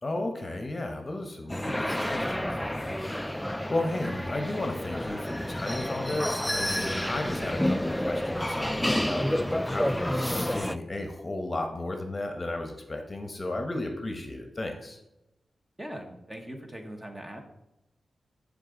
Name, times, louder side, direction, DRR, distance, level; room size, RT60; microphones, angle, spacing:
voice 1, 0.0-2.9 3.4-15.0, left 2 dB, 30° left, 4 dB, 1.0 m, -34 dB
sound 1, 1.5-10.8, left 1 dB, 5° left, 0.3 m, -29 dB
voice 2, 15.8-17.4, right 1 dB, 15° right, 3 dB, 1.1 m, -40 dB
10.5 x 3.8 x 3.8 m, 0.90 s
cardioid pair, 85°, 0 cm